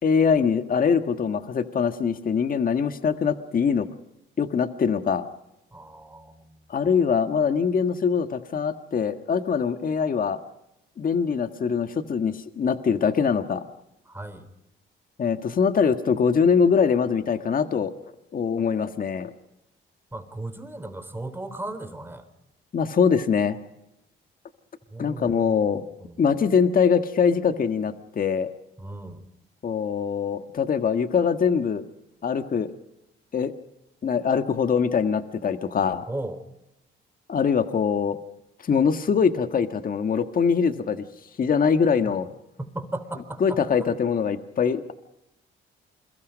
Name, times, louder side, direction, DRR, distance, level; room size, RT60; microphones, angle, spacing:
voice 1, 0.0-3.9 4.4-5.2 6.7-10.4 11.0-13.6 15.2-17.9 18.3-19.3 22.7-23.6 25.0-25.8 26.2-28.5 29.6-31.8 32.2-32.7 33.3-33.5 34.0-36.0 37.3-38.2 38.7-41.0 41.4-42.3 43.4-44.9, left 6 dB, 45° left, 9 dB, 1.5 m, -23 dB
voice 2, 5.7-6.6 14.1-14.5 20.1-22.3 24.9-26.4 28.8-29.3 36.1-36.4 42.1-42.2 42.6-43.6, right 2 dB, 10° right, 9 dB, 3.9 m, -36 dB
28.5 x 23.0 x 5.2 m, 0.88 s
cardioid pair, 90°, 20 cm